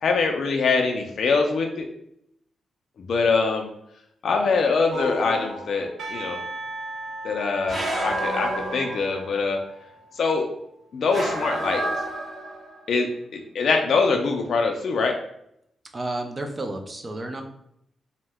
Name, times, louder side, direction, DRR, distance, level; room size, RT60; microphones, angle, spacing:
voice 1, 0.0-1.9 3.0-3.7 4.2-6.4 7.2-9.6 10.2-10.5 10.9-11.8 12.9-13.1 13.3-15.1, left 4 dB, 60° left, 2 dB, 0.3 m, -23 dB
sound 1, 4.9-5.9 7.7-9.4 11.1-12.8, right 1 dB, 55° right, 0.9 m, -30 dB
Percussion / Church bell, 6.0-10.4, right 2 dB, 75° right, 0.7 m, -38 dB
voice 2, 15.9-17.4, right 2 dB, 25° right, 5 dB, 0.4 m, -31 dB
2.7 x 2.1 x 3.3 m, 0.76 s
cardioid pair, 125°, 0 cm